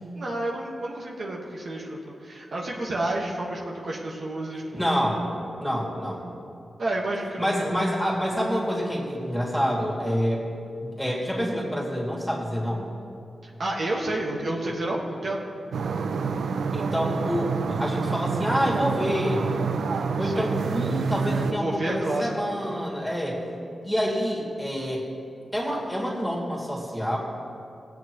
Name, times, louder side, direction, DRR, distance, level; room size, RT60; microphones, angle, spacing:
voice 1, 0.1-4.9 6.8-7.7 13.4-15.4 20.2-20.5 21.4-22.3, right 1 dB, 60° right, -2 dB, 1.5 m, -30 dB
voice 2, 4.7-5.3 5.6-6.3 7.4-10.5 10.8-13.0 16.7-19.5 20.2-23.4 23.8-25.0 25.5-27.2, equal, 5° left, -4 dB, 2.5 m, -27 dB
sound 1, 15.7-21.5, right 5 dB, 90° right, 0.4 m, -27 dB
18.0 x 8.3 x 3.1 m, 2.5 s
wide cardioid pair, 95°, 0 cm